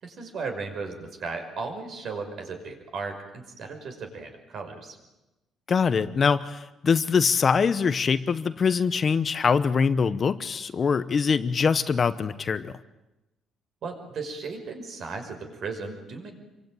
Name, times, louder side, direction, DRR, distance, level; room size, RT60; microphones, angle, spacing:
voice 1, 0.0-5.0 13.8-16.3, right 4 dB, 50° right, 5 dB, 5.5 m, -36 dB
voice 2, 5.7-12.7, left 5 dB, 35° left, 12 dB, 0.9 m, -23 dB
27.0 x 24.0 x 9.1 m, 0.99 s
cardioid pair, 150°, 0 cm